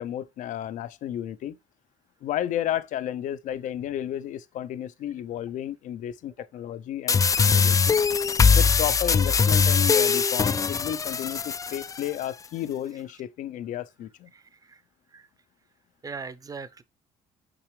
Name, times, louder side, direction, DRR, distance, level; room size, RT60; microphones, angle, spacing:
voice 1, 0.0-1.6 2.2-8.0 8.5-14.3, left 11 dB, 70° left, 0.6 m, -32 dB
sound 1, 7.1-12.1, left 5 dB, 25° left, 0.4 m, -21 dB
voice 2, 16.0-16.8, right 5 dB, 25° right, 0.8 m, -39 dB
6.1 x 5.8 x 3.2 m
cardioid pair, 100°, 14 cm